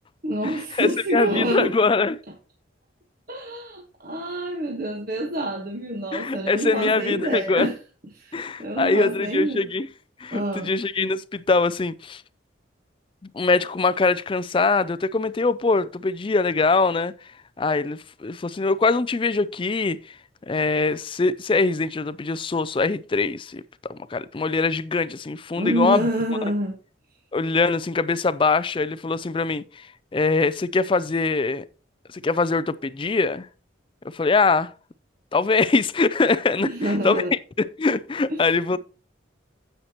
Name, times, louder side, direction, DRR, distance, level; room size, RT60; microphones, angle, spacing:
voice 1, 0.2-1.7 3.3-7.8 8.1-9.7 10.3-10.7 25.6-26.7 36.6-37.3 38.3-38.8, right 1 dB, 45° right, 1.3 m, -27 dB
voice 2, 0.8-2.2 6.1-7.7 8.3-9.9 10.2-12.2 13.3-17.1 17.6-20.0 20.5-23.6 23.9-26.0 27.3-29.9 30.1-31.6 32.1-33.5 34.0-34.7 35.3-37.2 37.6-38.8, left 3 dB, 25° left, 0.4 m, -23 dB
10.0 x 8.0 x 2.9 m
head